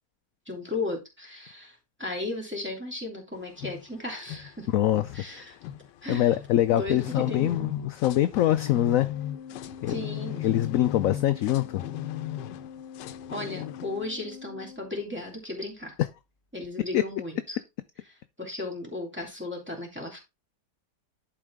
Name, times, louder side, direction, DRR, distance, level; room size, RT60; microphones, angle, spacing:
voice 1, 0.5-4.7 5.1-5.6 6.0-6.3 6.7-7.7 9.9-10.5 13.3-15.9 16.5-17.6 18.4-20.2, left 2 dB, 5° right, 2.7 m, -35 dB
sound 1, 3.4-14.1, left 12 dB, 85° left, 1.2 m, -38 dB
voice 2, 4.7-5.2 6.1-9.1 9.8-9.9 10.4-11.8 16.9-17.0, left 13 dB, 70° left, 0.8 m, -24 dB
Organ, 9.0-15.5, left 7 dB, 40° left, 0.9 m, -45 dB
11.0 x 4.8 x 3.5 m
omnidirectional pair, 1.8 m